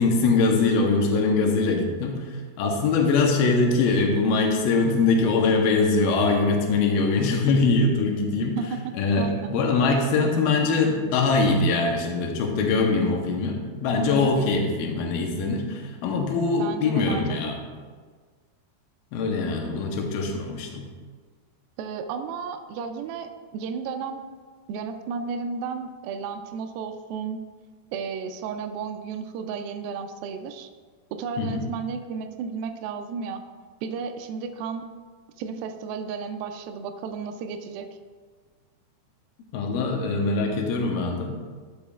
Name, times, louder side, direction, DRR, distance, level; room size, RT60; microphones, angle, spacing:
voice 1, 0.0-8.6 8.9-17.6 19.1-20.9 31.4-31.7 39.5-41.4, left 3 dB, 75° left, 2 dB, 2.4 m, -23 dB
voice 2, 9.2-9.6 14.2-14.6 16.6-17.5 21.8-24.2 24.7-27.4 27.9-30.7 31.1-33.4 33.8-34.9 35.4-37.9, right 5 dB, 85° right, 6 dB, 2.1 m, -33 dB
12.0 x 7.0 x 2.4 m, 1.5 s
omnidirectional pair, 4.7 m